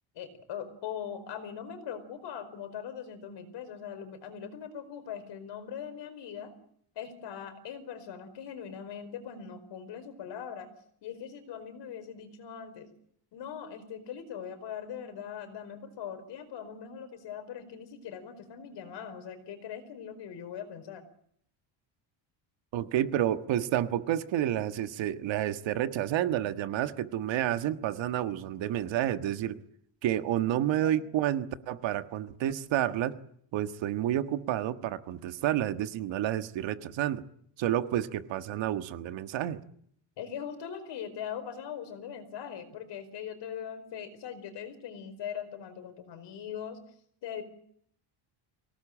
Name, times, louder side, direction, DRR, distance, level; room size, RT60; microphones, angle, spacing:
voice 1, 0.1-6.5 6.9-10.7 11.0-12.9 13.3-21.0 30.8-30.9 40.2-46.8 47.2-47.4, left 8 dB, 55° left, 9 dB, 4.8 m, -41 dB
voice 2, 22.7-29.6 30.0-33.1 33.5-37.2 37.6-39.6, right 12 dB, 65° right, 10 dB, 1.6 m, -30 dB
24.5 x 18.0 x 8.8 m, 0.67 s
cardioid pair, 165°, 49 cm